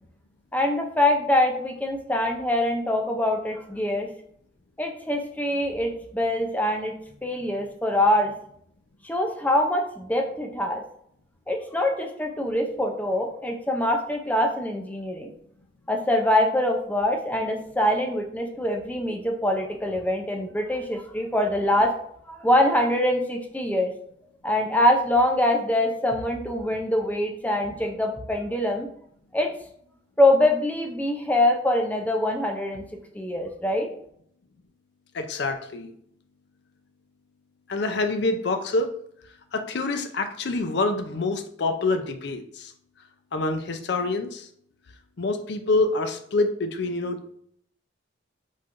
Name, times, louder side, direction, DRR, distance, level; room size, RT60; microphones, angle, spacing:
voice 1, 0.5-4.1 4.8-6.9 7.2-8.3 9.0-10.8 11.5-15.3 15.9-21.9 22.3-23.9 24.4-28.9 29.3-29.5 30.2-33.9, left 1 dB, 10° left, 2 dB, 0.5 m, -24 dB
voice 2, 35.1-35.9 37.7-39.0 39.5-42.7 43.3-44.5 45.2-47.4, left 3 dB, 60° left, 7 dB, 0.5 m, -26 dB
5.6 x 3.3 x 2.5 m, 0.66 s
head